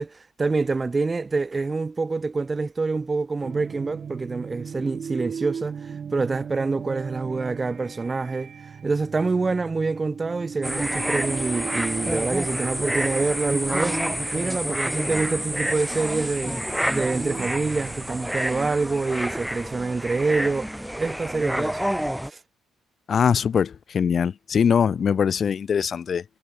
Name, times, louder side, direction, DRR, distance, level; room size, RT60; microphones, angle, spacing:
voice 1, 0.0-8.5 8.8-14.0 14.3-16.6 16.9-20.7 21.0-21.8 22.3-22.4, right 3 dB, 25° right, 6.7 m, -26 dB
sound 1, 3.4-18.6, right 7 dB, 50° right, 7.9 m, -37 dB
sound 2, 10.6-22.3, equal, 5° right, 6.9 m, -28 dB
voice 2, 23.1-26.2, left 7 dB, 50° left, 2.6 m, -22 dB
cardioid pair, 90°, 0 cm